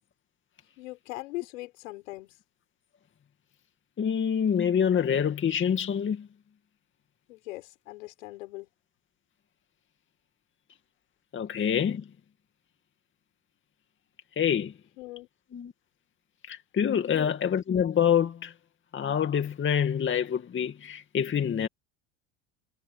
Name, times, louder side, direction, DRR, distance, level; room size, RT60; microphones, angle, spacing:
voice 1, 0.8-2.3 7.3-8.7 15.0-15.3 17.1-17.4, left 20 dB, 85° left, 6.4 m, -40 dB
voice 2, 4.0-6.3 11.3-12.0 14.4-14.7 15.5-15.7 16.5-18.5 18.9-21.7, left 8 dB, 30° left, 2.4 m, -26 dB
supercardioid pair, 105°, 39 cm